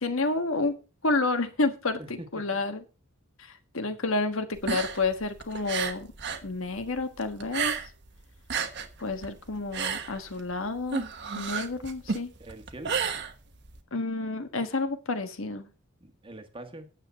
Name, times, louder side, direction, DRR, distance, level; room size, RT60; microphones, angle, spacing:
voice 1, 0.0-0.7 1.0-2.8 3.7-6.1 6.4-7.8 9.0-11.1 11.3-12.3 13.9-15.7, left 3 dB, 75° left, 1.4 m, -29 dB
voice 2, 2.0-2.6 9.2-9.3 12.4-13.0 16.0-16.9, right 1 dB, 25° right, 1.4 m, -44 dB
sound 1, 4.5-6.5 6.8-8.1 8.4-13.8, right 6 dB, 55° right, 1.3 m, -32 dB
9.6 x 7.8 x 5.6 m
head